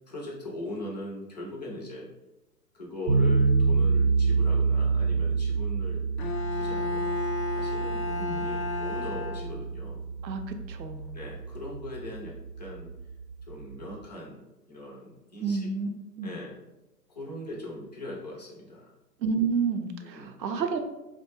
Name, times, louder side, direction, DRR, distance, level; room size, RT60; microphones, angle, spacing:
voice 1, 0.1-2.1 2.7-6.0 6.5-7.1 7.5-10.0 11.1-12.9 13.5-15.7 16.2-16.6 17.1-18.9 20.0-20.4, left 1 dB, 30° left, -3 dB, 0.4 m, -40 dB
sound 1, 3.1-14.0, right 4 dB, 45° right, 0.8 m, -28 dB
Bowed string instrument, 6.2-9.9, left 4 dB, 85° left, 0.6 m, -33 dB
voice 2, 10.2-11.2 15.4-15.9 16.2-16.4 19.2-20.8, right 5 dB, 90° right, 6 dB, 0.6 m, -30 dB
3.3 x 2.1 x 3.0 m, 0.99 s
hypercardioid pair, 130°, 50 cm